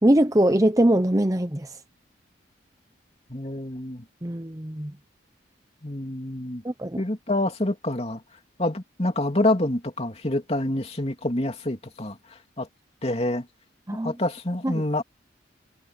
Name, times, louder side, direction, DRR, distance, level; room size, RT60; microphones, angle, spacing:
voice 1, 0.0-1.7 4.2-4.9 6.6-7.0 13.9-14.1 14.6-14.8, right 1 dB, 15° right, 0.8 m, -22 dB
voice 2, 3.3-4.0 5.8-6.6 7.0-8.2 8.6-12.2 12.6-12.7 13.0-13.4 14.0-15.0, left 1 dB, 30° left, 3.1 m, -27 dB
head